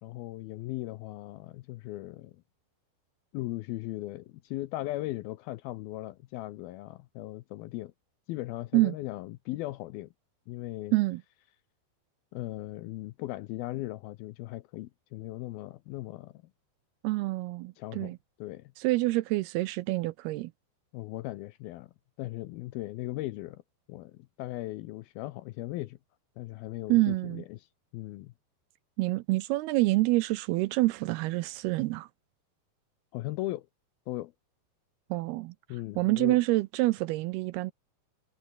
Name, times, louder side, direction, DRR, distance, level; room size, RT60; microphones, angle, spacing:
voice 1, 0.0-2.4 3.3-7.9 8.3-10.1 10.5-10.9 12.3-16.4 17.8-18.1 18.4-18.7 20.9-21.9 22.2-23.6 23.9-26.0 26.4-27.7 27.9-28.3 33.1-33.7 34.1-34.3 35.7-36.4, left 17 dB, 80° left, 2.3 m, -38 dB
voice 2, 17.0-18.2 18.8-20.5 26.9-27.4 29.0-32.1 35.1-35.5 36.0-37.7, right 20 dB, 85° right, 2.4 m, -27 dB
omnidirectional pair, 4.9 m